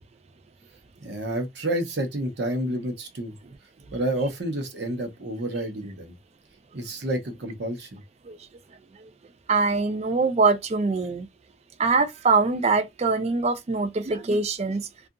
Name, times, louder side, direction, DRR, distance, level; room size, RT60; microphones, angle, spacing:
voice 1, 1.0-3.3 3.9-6.1 6.7-8.0, right 1 dB, 65° right, 0.8 m, -29 dB
voice 2, 9.5-11.3 11.8-14.9, right 4 dB, 35° right, 0.4 m, -23 dB
2.8 x 2.4 x 2.4 m
head